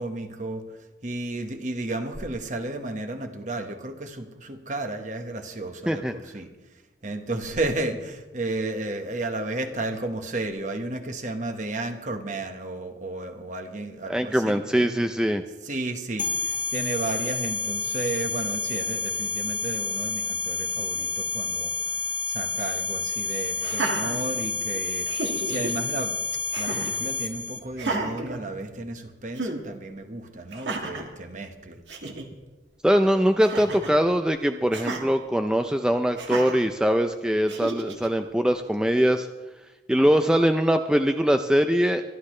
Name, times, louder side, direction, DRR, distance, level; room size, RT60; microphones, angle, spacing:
voice 1, 0.0-15.1 15.6-26.2 26.5-31.8, right 2 dB, 45° right, 1.3 m, -33 dB
voice 2, 14.1-15.4 32.8-39.3 39.9-42.0, equal, 5° right, 0.4 m, -22 dB
sound 1, 16.2-27.6, left 4 dB, 25° left, 1.7 m, -29 dB
Laughter, 23.6-24.7 25.1-25.7 26.5-27.0 27.7-29.0 29.4-29.6 30.5-31.1 31.6-31.7 31.9-32.3 33.4-34.0 34.7-35.0 36.2-36.7 37.5-38.1, right 3 dB, 75° right, 1.9 m, -32 dB
24.5 x 12.0 x 3.2 m
head